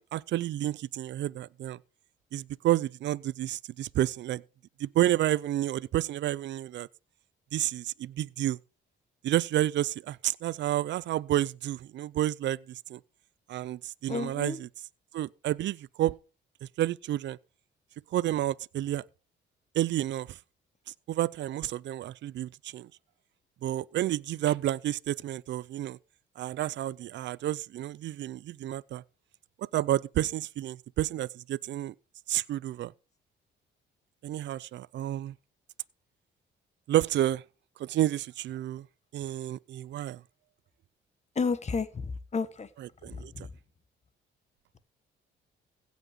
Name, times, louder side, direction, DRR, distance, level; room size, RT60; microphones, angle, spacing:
voice 1, 0.0-1.8 2.3-4.4 4.8-6.9 7.5-8.6 9.2-13.0 13.5-14.7 15.1-16.1 16.8-17.4 18.1-19.0 19.7-20.4 21.1-22.9 23.6-26.0 26.4-29.0 29.6-31.9 32.3-32.9 34.2-35.3 36.9-37.4 37.8-38.8 39.1-40.2 42.8-43.3, right 13 dB, 65° right, 0.5 m, -30 dB
voice 2, 14.1-14.6 41.4-42.7 43.3-43.5, left 4 dB, 35° left, 1.4 m, -31 dB
16.5 x 6.1 x 5.1 m
cardioid pair, 90°, 20 cm